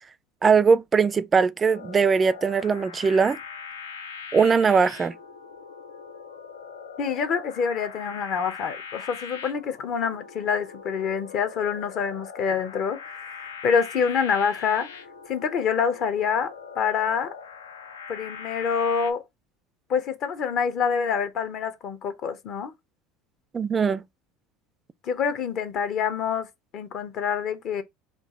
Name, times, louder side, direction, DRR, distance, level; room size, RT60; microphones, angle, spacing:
voice 1, 0.4-3.4 4.3-5.1 23.5-24.0, right 5 dB, 30° right, 0.3 m, -20 dB
sound 1, 1.6-19.1, left 6 dB, 85° left, 0.4 m, -41 dB
voice 2, 7.0-14.9 15.3-17.3 18.1-19.2 19.9-22.7 25.0-26.5 26.7-27.8, left 6 dB, 55° left, 0.8 m, -26 dB
3.8 x 2.4 x 3.6 m
hypercardioid pair, 75°, 0 cm